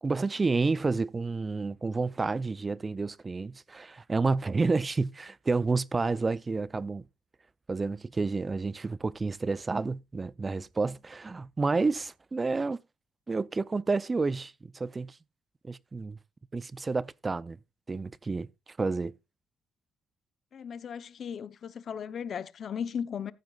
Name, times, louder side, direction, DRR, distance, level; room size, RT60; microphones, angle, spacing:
voice 1, 0.0-7.0 7.7-12.8 13.3-15.2 15.6-16.2 16.5-17.6 17.9-19.1, right 3 dB, 25° right, 0.4 m, -30 dB
voice 2, 20.5-23.3, left 7 dB, 55° left, 0.7 m, -36 dB
14.5 x 9.3 x 2.4 m
cardioid pair, 90°, 0 cm